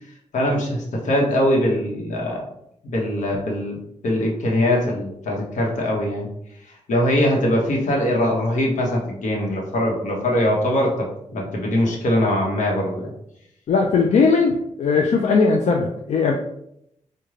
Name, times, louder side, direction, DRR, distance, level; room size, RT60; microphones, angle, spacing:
voice 1, 0.3-2.4 2.8-3.8 4.0-6.3 6.7-13.1, left 1 dB, 80° left, -1 dB, 0.9 m, -22 dB
voice 2, 13.7-16.3, left 4 dB, 65° left, 1 dB, 0.4 m, -18 dB
3.6 x 2.2 x 3.1 m, 0.77 s
cardioid pair, 85°, 13 cm